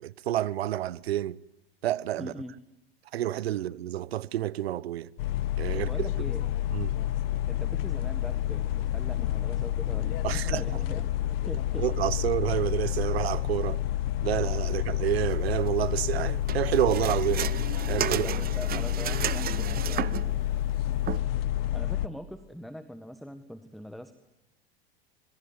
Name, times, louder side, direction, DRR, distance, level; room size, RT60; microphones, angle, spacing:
voice 1, 0.0-1.4 1.8-2.3 3.1-5.1 5.6-6.1 6.7-6.9 10.2-10.6 11.8-13.8 14.2-17.5 17.9-18.3, right 13 dB, 85° right, 1.1 m, -29 dB
voice 2, 2.2-2.6 5.7-6.4 7.5-11.8 18.1-20.4 21.7-24.1, equal, ahead, 1.7 m, -42 dB
sound 1, 5.2-22.1, left 12 dB, 70° left, 1.1 m, -29 dB
sound 2, 16.5-20.3 21.1-21.2, right 12 dB, 30° right, 1.0 m, -33 dB
26.5 x 23.0 x 9.7 m
hypercardioid pair, 110°, 30 cm